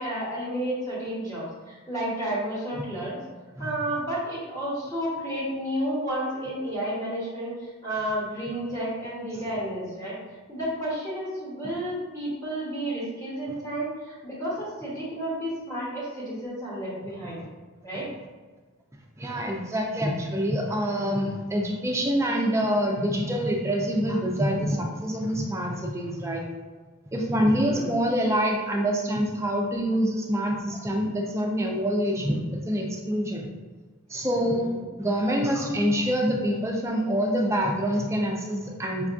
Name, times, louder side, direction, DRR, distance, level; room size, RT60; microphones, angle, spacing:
voice 1, 0.0-3.1 3.6-7.5 7.8-10.1 10.5-17.4 17.8-18.1 27.6-27.9 34.4-34.6, right 1 dB, 15° left, -8 dB, 1.0 m, -31 dB
voice 2, 19.2-26.4 27.1-33.5 34.1-39.1, equal, 15° right, 0 dB, 0.4 m, -26 dB
5.2 x 2.3 x 2.4 m, 1.3 s
head